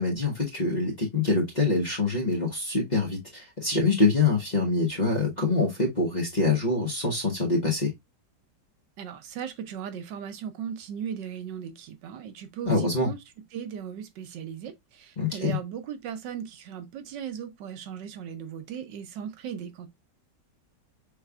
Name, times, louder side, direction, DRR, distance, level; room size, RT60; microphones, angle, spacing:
voice 1, 0.0-7.9 12.7-13.1 15.2-15.6, left 3 dB, 25° left, 1.2 m, -25 dB
voice 2, 9.0-13.2 13.5-19.9, right 8 dB, 75° right, 1.4 m, -37 dB
6.0 x 3.3 x 2.3 m
omnidirectional pair, 1.9 m